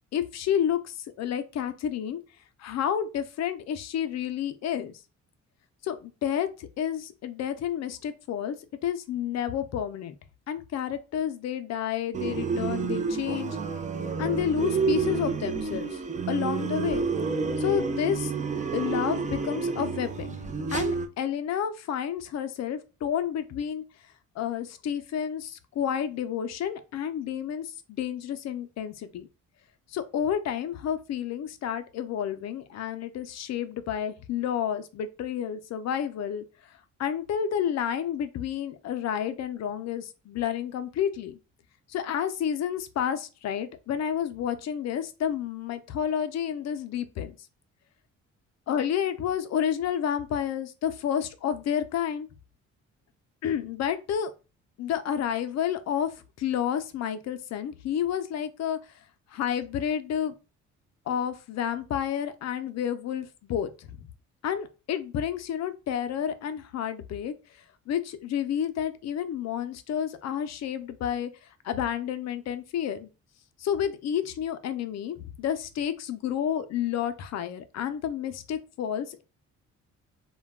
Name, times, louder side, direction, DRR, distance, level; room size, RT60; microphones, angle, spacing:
voice 1, 0.1-2.2 2.6-5.0 5.8-8.6 8.8-10.1 10.5-13.6 14.2-16.0 16.3-17.1 17.6-18.3 18.7-20.4 20.7-23.8 24.4-29.3 29.9-41.4 41.9-47.4 48.7-52.3 53.4-54.3 54.8-58.8 59.3-60.3 61.1-64.0 64.4-73.1 73.6-79.2, left 9 dB, 60° left, 0.5 m, -30 dB
sound 1, 12.1-21.1, right 5 dB, 25° right, 0.4 m, -29 dB
2.2 x 2.2 x 3.4 m
cardioid pair, 90°, 30 cm